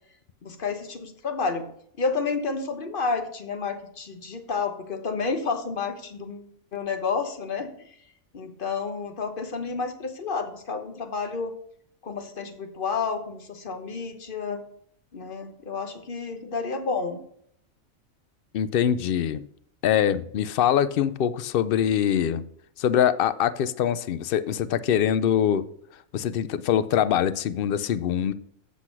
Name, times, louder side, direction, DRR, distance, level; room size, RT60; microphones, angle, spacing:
voice 1, 0.4-1.7 2.0-7.7 8.3-11.5 12.0-14.6 15.1-17.2, left 4 dB, 45° left, 1.1 m, -30 dB
voice 2, 18.5-19.4 19.8-22.4 22.8-25.7 26.1-28.3, left 9 dB, 65° left, 0.6 m, -23 dB
7.9 x 6.2 x 5.9 m
omnidirectional pair, 1.4 m